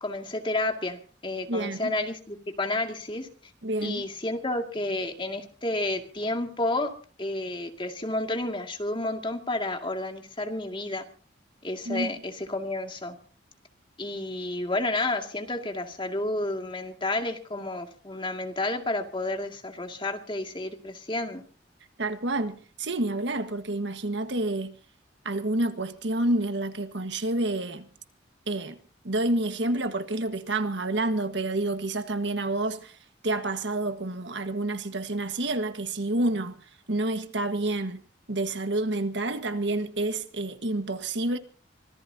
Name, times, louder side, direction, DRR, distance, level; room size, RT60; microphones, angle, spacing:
voice 1, 0.0-3.3 3.8-6.9 7.2-11.0 11.6-13.1 14.0-21.4, left 2 dB, 25° left, 2.2 m, -31 dB
voice 2, 1.5-1.9 3.6-4.1 11.8-12.1 22.0-24.7 25.2-27.9 28.5-28.8 29.0-33.0 33.2-36.6 36.9-38.0 38.3-41.4, right 2 dB, 65° right, 1.5 m, -28 dB
25.0 x 18.0 x 2.8 m
head